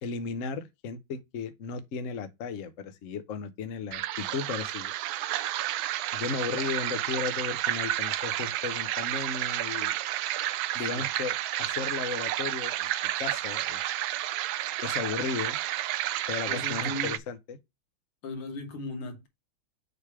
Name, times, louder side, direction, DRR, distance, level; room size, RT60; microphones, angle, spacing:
voice 1, 0.0-4.9 6.1-9.9 10.7-12.9 13.2-13.8 14.8-15.6 16.3-17.4, left 5 dB, 55° left, 0.9 m, -35 dB
sound 1, 3.9-17.2, right 14 dB, 75° right, 1.3 m, -31 dB
voice 2, 16.5-17.2 18.2-19.3, left 2 dB, 90° left, 2.4 m, -37 dB
6.7 x 3.3 x 4.7 m
omnidirectional pair, 2.3 m